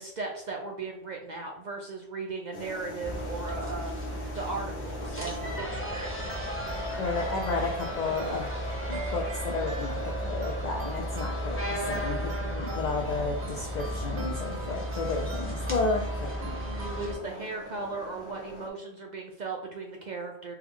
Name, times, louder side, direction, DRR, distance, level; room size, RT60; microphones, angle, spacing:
voice 1, 0.0-6.6 16.5-20.5, right 3 dB, 55° right, 1 dB, 0.5 m, -37 dB
sound 1, 2.5-18.7, left 1 dB, 70° left, 1.0 m, -42 dB
sound 2, 3.0-17.1, equal, 15° left, 0.7 m, -34 dB
sound 3, 5.2-17.2, right 2 dB, 85° right, 0.9 m, -43 dB
voice 2, 7.0-8.5 8.9-16.5, left 3 dB, 55° left, 2 dB, 0.5 m, -32 dB
4.4 x 2.3 x 3.5 m, 0.77 s
omnidirectional pair, 1.1 m